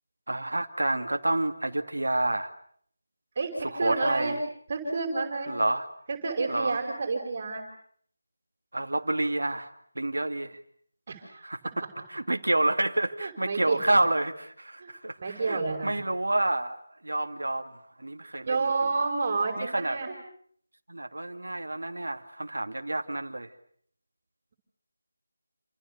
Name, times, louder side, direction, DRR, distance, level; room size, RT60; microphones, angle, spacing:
voice 1, 0.3-2.5 3.6-4.4 5.5-5.9 6.5-6.8 8.7-9.7 10.0-10.6 11.4-11.6 12.1-17.6 18.0-18.7 19.6-20.0 20.9-23.5, right 2 dB, 80° right, 7 dB, 2.4 m, -29 dB
voice 2, 3.4-4.4 4.7-5.5 6.1-7.7 11.1-11.4 13.2-14.0 14.8-14.9 15.2-16.1 18.4-20.2, right 3 dB, 40° right, 3 dB, 5.7 m, -30 dB
29.5 x 26.0 x 6.8 m, 0.63 s
figure-of-eight pair, 165°, 0 cm